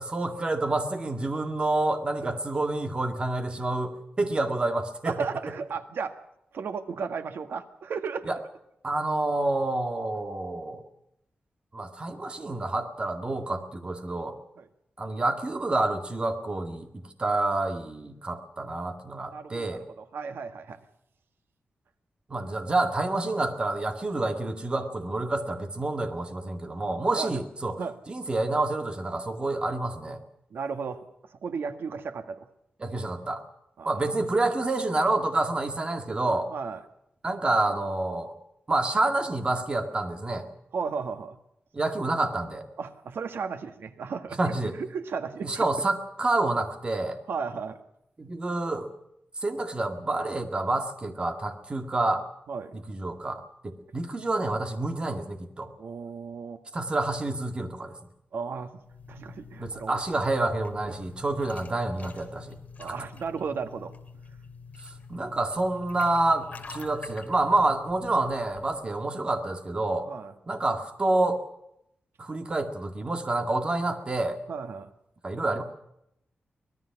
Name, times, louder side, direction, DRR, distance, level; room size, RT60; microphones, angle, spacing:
voice 1, 0.0-5.2 8.3-8.4 8.8-10.8 11.7-14.4 15.0-16.9 17.2-19.8 22.3-27.8 28.1-30.2 32.8-33.4 33.9-36.5 37.2-38.3 38.7-40.5 41.7-42.7 44.4-44.8 45.4-47.2 48.2-48.9 49.4-52.3 52.7-55.7 56.7-58.0 59.1-59.3 59.6-63.0 65.1-70.1 70.5-71.4 72.2-74.4 75.2-75.6, right 2 dB, 30° right, 5 dB, 2.0 m, -28 dB
voice 2, 5.0-6.1 6.5-8.2 14.6-14.7 19.3-20.8 27.1-27.4 27.8-27.9 30.5-31.0 31.4-32.5 33.8-34.0 36.5-36.8 40.7-41.4 42.8-44.5 44.8-45.6 47.3-47.8 52.5-52.8 55.8-56.6 58.3-58.8 59.1-60.0 60.8-61.0 62.8-63.9 70.0-70.3 74.5-74.9, right 5 dB, 90° right, 7 dB, 1.7 m, -34 dB
sound 1, 58.8-68.8, left 5 dB, 40° left, 3.0 m, -46 dB
24.5 x 18.5 x 6.0 m, 0.77 s
wide cardioid pair, 170°, 4 cm